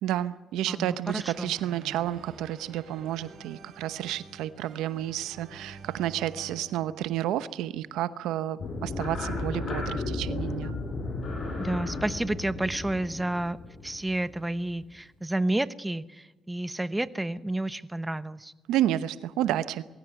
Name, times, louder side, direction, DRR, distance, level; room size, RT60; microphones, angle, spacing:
voice 1, 0.0-10.8 18.7-19.8, right 12 dB, 90° right, 14 dB, 0.9 m, -30 dB
voice 2, 0.7-1.5 11.6-13.6 13.8-18.5, right 1 dB, 10° right, 14 dB, 1.0 m, -30 dB
sound 1, 1.0-8.0, right 5 dB, 70° right, 5.1 m, -49 dB
sound 2, 8.6-14.6, left 2 dB, 45° left, 6.2 m, -34 dB
22.5 x 16.0 x 9.3 m, 1.2 s
cardioid pair, 85°, 0 cm